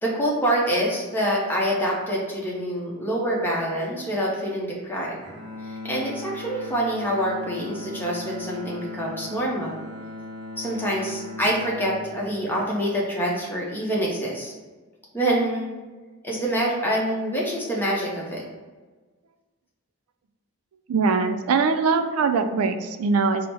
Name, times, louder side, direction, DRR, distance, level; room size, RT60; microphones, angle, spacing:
voice 1, 0.0-5.2 5.6-9.8 10.6-14.5 15.1-15.7 16.2-18.4, right 1 dB, 10° left, -4 dB, 0.7 m, -26 dB
Bowed string instrument, 5.2-13.4, left 2 dB, 50° right, 1.0 m, -38 dB
voice 2, 20.9-23.5, right 4 dB, 80° right, 8 dB, 0.4 m, -22 dB
4.5 x 2.0 x 3.3 m, 1.3 s
head